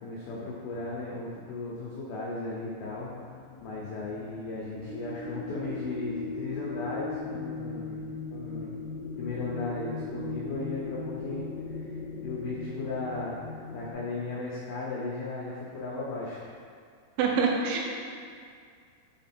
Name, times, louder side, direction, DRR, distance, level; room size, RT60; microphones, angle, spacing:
voice 1, 0.0-3.1 3.6-8.0 8.3-8.8 9.2-11.5 11.7-12.0 12.2-13.4 13.7-16.5, left 3 dB, 90° left, -5 dB, 2.0 m, -36 dB
sound 1, 2.7-13.9, left 3 dB, 60° left, 2.5 m, -39 dB
voice 2, 17.2-17.8, right 5 dB, 85° right, -1 dB, 3.2 m, -25 dB
6.9 x 3.6 x 4.3 m, 2.2 s
omnidirectional pair, 5.2 m